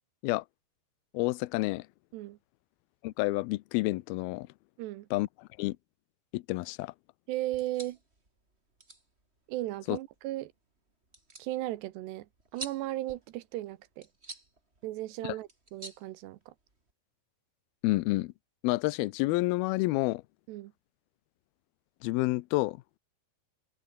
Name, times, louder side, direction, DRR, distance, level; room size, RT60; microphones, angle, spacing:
voice 1, 1.1-1.9 3.0-4.5 5.1-5.3 5.6-5.8 6.3-6.9 9.9-10.0 15.2-15.4 17.8-18.3 18.6-20.2 22.0-22.8, left 21 dB, 85° left, 2.3 m, -29 dB
voice 2, 4.8-5.1 7.3-8.0 9.5-10.5 11.4-12.3 12.5-14.1 14.8-16.5 20.5-20.7, right 16 dB, 80° right, 3.0 m, -36 dB
sound 1, 7.4-16.9, right 2 dB, 15° right, 3.8 m, -51 dB
omnidirectional pair, 5.0 m